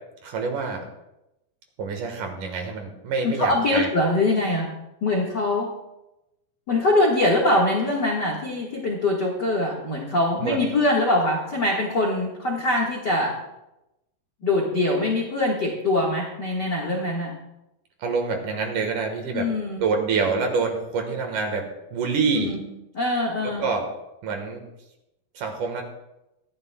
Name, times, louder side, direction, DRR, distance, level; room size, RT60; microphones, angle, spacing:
voice 1, 0.2-0.8 1.8-3.9 10.4-10.6 18.0-19.5 19.8-22.6 23.4-23.9 24.2-24.6 25.4-25.8, right 4 dB, 60° right, 3 dB, 2.5 m, -26 dB
voice 2, 3.2-4.7 5.0-5.7 6.7-13.3 14.4-17.3 19.3-19.8 22.3-22.6 22.9-23.6, left 2 dB, 70° left, -2 dB, 1.0 m, -23 dB
19.5 x 13.5 x 2.3 m, 0.92 s
omnidirectional pair, 4.7 m